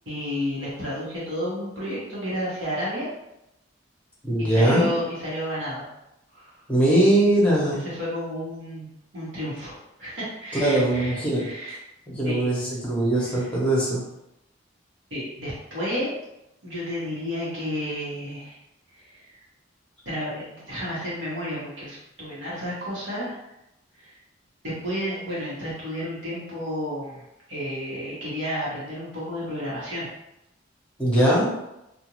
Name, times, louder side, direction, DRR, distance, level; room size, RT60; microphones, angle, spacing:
voice 1, 0.1-3.1 4.4-5.8 6.3-6.5 7.8-8.9 9.1-11.7 12.2-12.5 13.2-13.5 15.1-16.1 16.6-18.6 19.0-19.2 20.0-23.4 24.0-24.2 24.6-27.2 27.5-30.1, equal, 70° right, -8 dB, 1.2 m, -31 dB
voice 2, 4.2-4.9 6.7-7.8 10.5-11.5 12.1-14.0 31.0-31.5, right 1 dB, 5° left, -6 dB, 0.9 m, -21 dB
2.5 x 2.4 x 3.0 m, 0.87 s
head